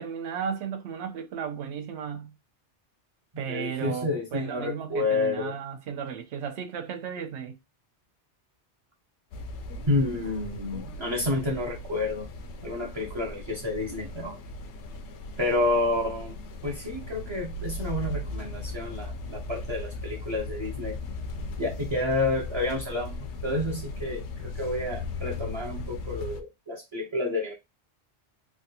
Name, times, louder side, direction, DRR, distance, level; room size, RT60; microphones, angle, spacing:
voice 1, 0.0-2.3 3.4-7.6, right 7 dB, 85° right, 0.9 m, -34 dB
voice 2, 3.5-5.5 9.9-12.3 12.6-14.4 15.4-16.4 16.6-21.0 21.6-23.2 23.4-27.5, left 2 dB, 35° right, 0.5 m, -29 dB
sound 1, 9.3-26.4, left 2 dB, 80° left, 0.9 m, -37 dB
3.3 x 2.3 x 2.7 m
omnidirectional pair, 1.1 m